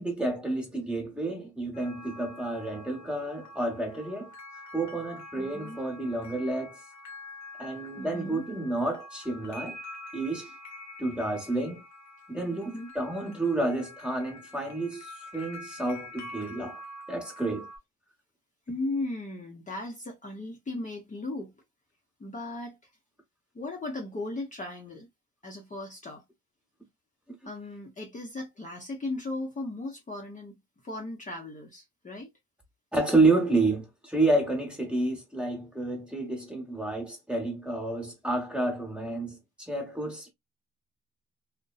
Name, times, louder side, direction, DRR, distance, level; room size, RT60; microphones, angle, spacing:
voice 1, 0.0-4.3 4.7-6.8 7.6-9.8 10.1-10.5 11.0-11.8 12.3-16.8 17.1-17.7 32.9-39.4 39.7-40.3, right 2 dB, 5° right, 1.1 m, -29 dB
sound 1, 1.7-17.8, left 1 dB, 65° left, 0.9 m, -46 dB
voice 2, 5.4-5.8 8.0-8.5 12.5-12.9 18.7-21.5 22.2-22.8 23.5-25.1 25.4-26.2 27.4-30.5 30.8-32.3, left 2 dB, 25° left, 0.7 m, -37 dB
2.6 x 2.1 x 2.3 m
cardioid pair, 90°, 30 cm